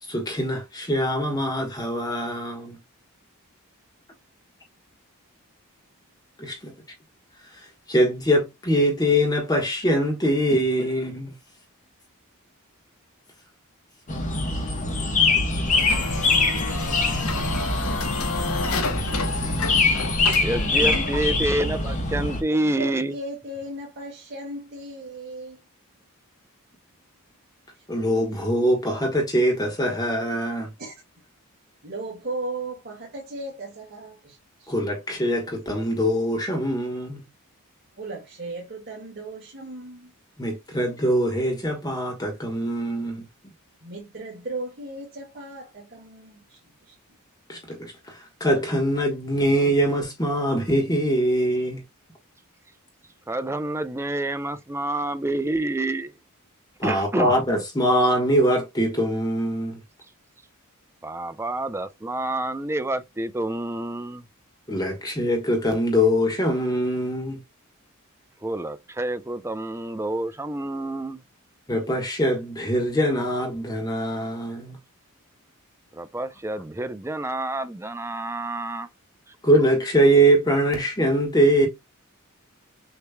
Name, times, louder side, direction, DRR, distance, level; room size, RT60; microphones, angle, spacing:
voice 1, 0.1-2.8 6.4-6.7 7.9-11.3 20.8-21.0 27.9-30.7 34.7-37.2 40.4-43.2 47.5-51.8 56.8-59.8 64.7-67.4 71.7-74.8 79.4-81.7, equal, 20° left, 1.2 m, -23 dB
sound 1, 14.1-22.4, left 3 dB, 35° left, 1.2 m, -24 dB
sound 2, 15.7-21.5, left 3 dB, 75° left, 1.2 m, -30 dB
voice 2, 20.4-23.1 53.3-56.1 56.8-57.4 61.0-64.2 68.4-71.2 75.9-78.9, right 1 dB, 10° right, 0.5 m, -28 dB
voice 3, 22.6-25.6 27.7-27.8 30.8-30.9 31.8-34.7 38.0-40.1 43.8-47.0, right 2 dB, 45° right, 1.9 m, -36 dB
6.6 x 3.1 x 2.2 m
head